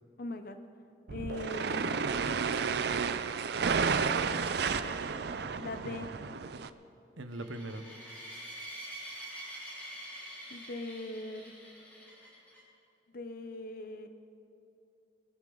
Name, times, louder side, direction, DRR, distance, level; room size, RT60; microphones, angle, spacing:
voice 1, 0.2-0.6 1.1-1.8 5.6-6.1 10.5-11.5 13.1-14.1, left 2 dB, 50° left, 8 dB, 0.7 m, -40 dB
sound 1, 1.1-6.7, right 5 dB, 60° right, 0.5 m, -31 dB
voice 2, 2.0-2.9 5.8-6.0 7.2-7.9, right 1 dB, 90° right, 9 dB, 0.9 m, -42 dB
sound 2, 7.3-12.6, right 1 dB, 10° left, 3.1 m, -46 dB
22.5 x 11.5 x 3.9 m, 2.9 s
head